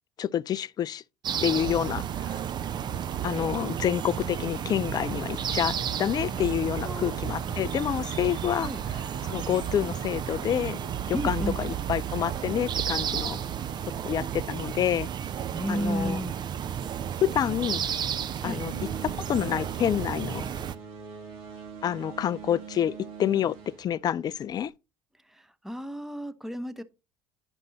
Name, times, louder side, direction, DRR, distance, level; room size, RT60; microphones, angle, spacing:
voice 1, 0.2-1.0 1.4-2.4 3.2-8.7 9.3-10.8 11.1-13.4 14.0-15.1 15.7-16.2 17.2-17.8 18.4-18.7 19.0-20.5 21.8-24.7, left 10 dB, 35° left, 0.4 m, -28 dB
sound 1, 1.2-20.8, right 9 dB, 40° right, 0.6 m, -32 dB
sound 2, 4.0-14.9, left 5 dB, 90° left, 0.9 m, -50 dB
voice 2, 6.8-7.6 8.6-8.8 11.1-11.6 15.5-16.4 18.4-18.6 25.3-26.8, right 1 dB, 5° right, 0.9 m, -33 dB
sound 3, 18.7-24.7, right 6 dB, 60° right, 2.4 m, -43 dB
10.5 x 5.3 x 3.9 m
hypercardioid pair, 65°, 11 cm